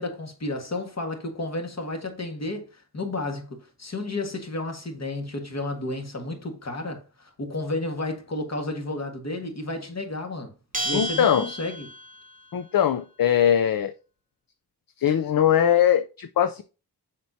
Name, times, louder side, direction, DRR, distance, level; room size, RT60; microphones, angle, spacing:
voice 1, 0.0-2.7 2.9-10.5 10.8-11.9, left 2 dB, 40° left, 1.7 m, -32 dB
Bell, 10.7-12.3, right 1 dB, 20° right, 1.0 m, -32 dB
voice 2, 10.9-11.4 12.5-13.9 15.0-16.6, left 9 dB, 60° left, 0.6 m, -21 dB
7.5 x 5.9 x 2.7 m
wide cardioid pair, 130°, 39 cm